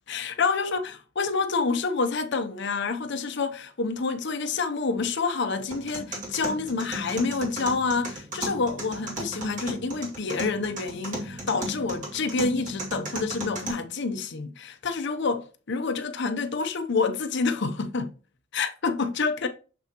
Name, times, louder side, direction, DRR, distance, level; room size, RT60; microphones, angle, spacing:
voice 1, 0.1-18.1 18.5-19.5, left 4 dB, 60° left, 0.7 m, -28 dB
sound 1, 5.7-13.7, right 1 dB, 40° right, 2.5 m, -36 dB
7.0 x 5.9 x 2.9 m
head